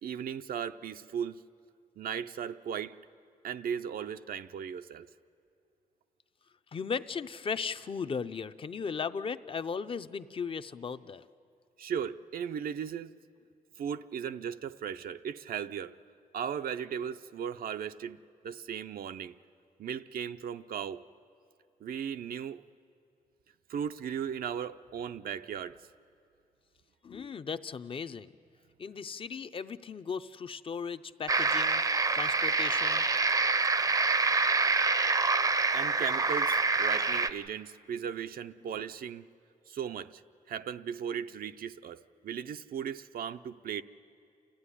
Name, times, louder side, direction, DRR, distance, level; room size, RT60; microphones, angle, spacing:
voice 1, 0.0-1.4 2.0-3.0 3.4-5.1 11.8-13.1 13.8-15.9 16.3-18.2 18.4-19.3 19.8-21.0 21.8-22.6 23.7-25.8 35.7-39.3 39.7-40.2 40.5-43.8, right 8 dB, 85° right, 9 dB, 0.5 m, -37 dB
voice 2, 6.7-11.3 27.0-28.3 28.8-31.8 32.1-33.1, left 6 dB, 40° left, 12 dB, 0.5 m, -37 dB
sound 1, 31.3-37.3, right 4 dB, 25° right, 0.5 m, -26 dB
29.0 x 14.5 x 9.9 m, 2.5 s
wide cardioid pair, 165°, 15 cm